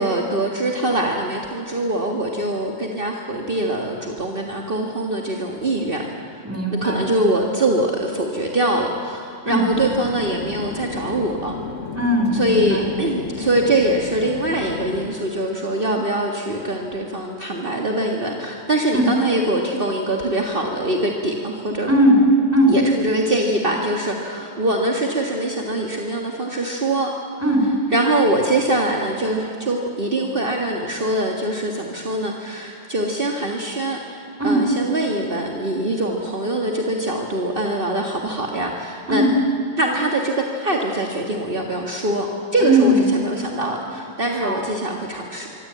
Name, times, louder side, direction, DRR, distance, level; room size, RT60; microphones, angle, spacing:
voice 1, 0.0-6.4 6.8-11.6 12.3-21.9 22.7-27.1 27.9-39.2 39.8-42.3 42.5-45.5, right 1 dB, 45° right, 0 dB, 2.1 m, -23 dB
voice 2, 6.4-7.1 9.4-9.7 11.9-12.9 18.9-19.1 21.9-22.2 22.5-22.7 27.4-27.7 34.4-34.6 39.1-39.3 42.6-43.0 44.4-44.6, equal, 10° right, 2 dB, 4.2 m, -18 dB
Chatter / Fixed-wing aircraft airplane, 9.7-15.1, left 5 dB, 75° left, 1.9 m, -33 dB
25.0 x 25.0 x 8.7 m, 2.8 s
omnidirectional pair, 1.3 m